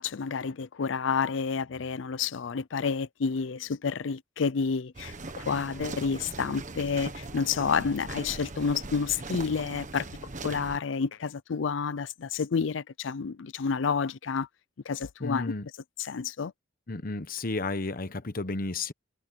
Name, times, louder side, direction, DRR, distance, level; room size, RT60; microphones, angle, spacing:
voice 1, 0.0-10.1 10.4-14.5 14.9-15.5 16.0-16.5, left 5 dB, 80° left, 0.5 m, -30 dB
sound 1, 4.9-10.8, right 2 dB, 45° right, 1.5 m, -40 dB
voice 2, 15.2-15.7 16.9-18.9, left 3 dB, 50° left, 1.1 m, -32 dB
head